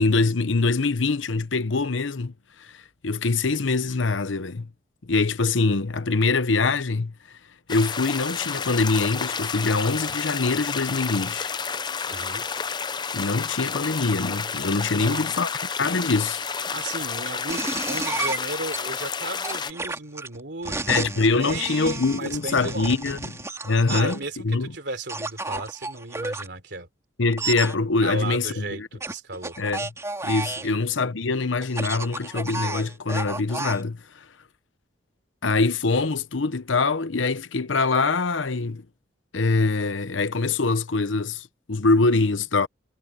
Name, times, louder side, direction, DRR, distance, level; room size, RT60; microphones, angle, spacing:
voice 1, 0.0-2.3 2.6-2.7 3.0-4.7 5.1-7.1 7.7-11.5 13.1-15.5 15.8-16.4 20.9-23.3 23.6-24.2 24.4-24.7 27.2-28.9 29.6-29.9 30.2-34.0 35.4-38.8 39.3-42.7, left 3 dB, 85° left, 0.9 m, -24 dB
sound 1, 7.7-19.7, left 6 dB, 25° left, 0.5 m, -30 dB
voice 2, 12.1-12.5 14.9-15.4 16.7-23.2 23.9-26.9 28.0-29.6 30.6-30.8, right 3 dB, 60° right, 3.5 m, -35 dB
sound 2, 17.5-18.8 19.4-24.2 25.1-26.5 27.3-27.7 29.0-30.7 31.6-33.8, right 3 dB, 15° right, 3.6 m, -32 dB
head